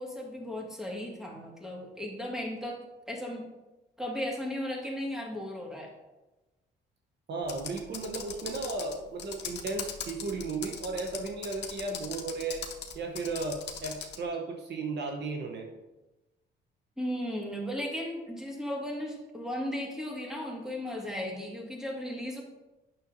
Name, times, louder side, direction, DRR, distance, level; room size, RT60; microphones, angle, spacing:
voice 1, 0.0-2.8 3.1-3.5 4.0-5.9 17.0-22.4, left 1 dB, ahead, -1 dB, 1.8 m, -36 dB
voice 2, 7.3-12.6 12.9-15.7, right 3 dB, 60° right, 3 dB, 0.9 m, -35 dB
Computer keyboard, 7.4-14.2, left 7 dB, 60° left, 0.7 m, -40 dB
8.8 x 6.3 x 2.6 m, 1.1 s
cardioid pair, 90°, 20 cm